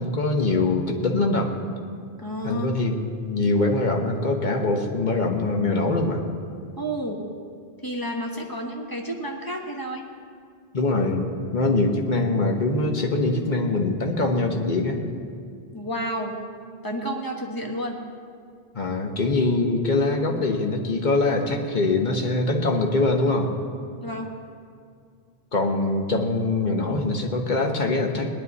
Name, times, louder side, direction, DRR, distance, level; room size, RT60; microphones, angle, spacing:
voice 1, 0.0-1.5 2.4-6.2 10.7-15.0 18.7-23.5 25.5-28.3, left 2 dB, 50° left, 2 dB, 1.3 m, -23 dB
voice 2, 2.2-2.7 6.8-7.2 7.8-10.1 15.7-16.3 16.8-18.0 24.0-24.3, right 1 dB, 20° left, 1 dB, 1.3 m, -30 dB
18.5 x 11.0 x 4.1 m, 2.2 s
omnidirectional pair, 1.0 m